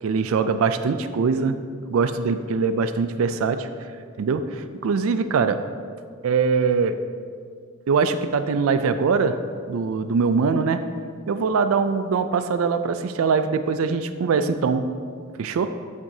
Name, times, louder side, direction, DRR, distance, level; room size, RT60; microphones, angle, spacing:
voice 1, 0.0-1.6 1.9-3.7 4.2-5.6 6.2-7.0 7.9-9.4 9.7-10.8 11.3-14.8 15.4-15.7, right 5 dB, 70° right, 10 dB, 0.4 m, -22 dB
12.0 x 5.9 x 2.8 m, 2.1 s
head